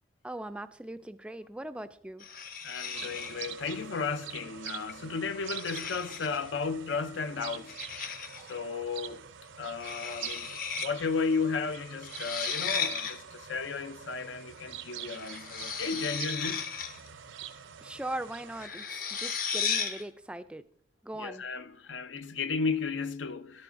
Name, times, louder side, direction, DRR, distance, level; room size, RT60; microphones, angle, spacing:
voice 1, 0.2-2.3 8.4-8.5 17.8-20.6 21.0-21.4, right 1 dB, 5° right, 0.3 m, -40 dB
sound 1, 2.2-3.5 4.7-4.9 5.4-6.5 7.7-8.5 9.8-10.9 11.1-11.2 12.0-13.2 15.1-17.1 18.5-20.0, left 6 dB, 45° left, 0.8 m, -35 dB
voice 2, 2.6-7.8 8.5-9.2 9.6-10.5 10.8-16.7 21.1-23.6, left 4 dB, 80° left, 0.6 m, -34 dB
sound 2, 2.9-18.7, right 9 dB, 85° right, 0.6 m, -45 dB
13.0 x 11.0 x 2.6 m
head